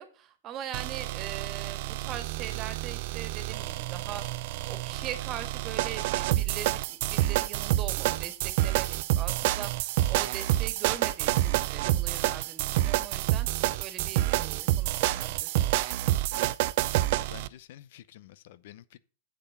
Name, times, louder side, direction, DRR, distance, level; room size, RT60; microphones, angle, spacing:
voice 1, 0.0-13.5 13.8-16.0, right 10 dB, 35° right, 1.8 m, -41 dB
sound 1, 0.7-17.5, right 16 dB, 55° right, 0.5 m, -28 dB
voice 2, 17.1-19.0, left 13 dB, 65° left, 0.6 m, -49 dB
7.6 x 6.9 x 7.0 m
hypercardioid pair, 110°, 0 cm